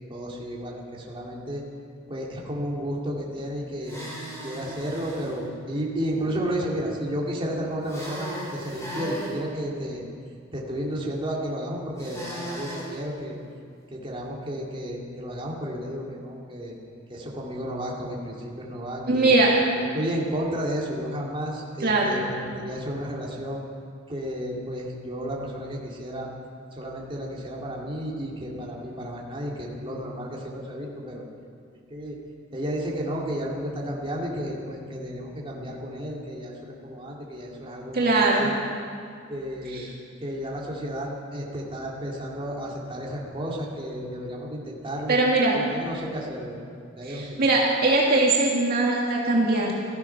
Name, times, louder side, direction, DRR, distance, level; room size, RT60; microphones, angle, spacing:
voice 1, 0.1-1.6 2.1-4.0 4.4-10.0 10.5-13.4 13.9-16.8 17.1-19.3 19.7-23.6 24.1-26.3 26.8-31.2 31.9-32.2 32.5-38.6 39.3-39.9 40.2-45.2 45.6-46.6 47.0-47.4, equal, 25° right, -3 dB, 2.4 m, -32 dB
sound 1, 3.8-5.3 7.9-9.4 12.0-12.9, equal, 15° left, 3.6 m, -36 dB
voice 2, 19.1-19.5 21.8-22.2 37.9-38.5 45.1-45.6 47.1-49.7, right 2 dB, 50° right, -3 dB, 1.9 m, -21 dB
16.5 x 14.0 x 5.9 m, 2.2 s
head